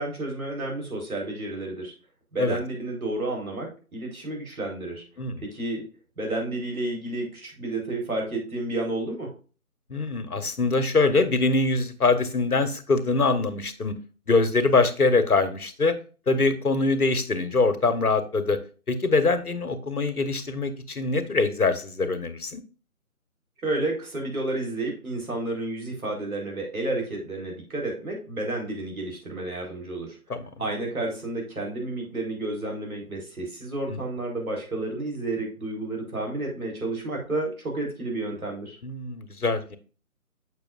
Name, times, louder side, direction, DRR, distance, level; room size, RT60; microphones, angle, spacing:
voice 1, 0.0-1.9 2.3-5.0 5.4-5.9 6.2-9.3 23.6-30.2 30.6-38.8, right 2 dB, 70° right, 0 dB, 4.4 m, -31 dB
voice 2, 9.9-13.9 14.3-15.9 16.3-18.6 18.9-22.6 30.3-30.4 33.9-34.0 38.8-39.8, left 3 dB, 80° left, 9 dB, 1.5 m, -23 dB
8.5 x 6.7 x 2.6 m, 0.36 s
figure-of-eight pair, 155°, 44 cm